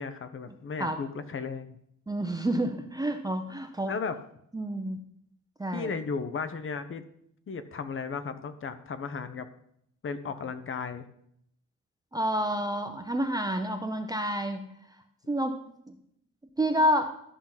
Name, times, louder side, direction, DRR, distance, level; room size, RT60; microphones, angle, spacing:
voice 1, 0.0-1.8 3.8-4.2 5.7-7.0 7.5-9.5 10.0-11.1, left 5 dB, 40° left, 11 dB, 0.8 m, -35 dB
voice 2, 2.1-4.0 4.5-5.0 5.6-5.9 12.1-14.7 15.3-15.6 15.9-16.0 16.6-17.1, equal, 10° right, 5 dB, 0.6 m, -29 dB
12.5 x 5.8 x 3.9 m, 0.72 s
cardioid pair, 120°, 32 cm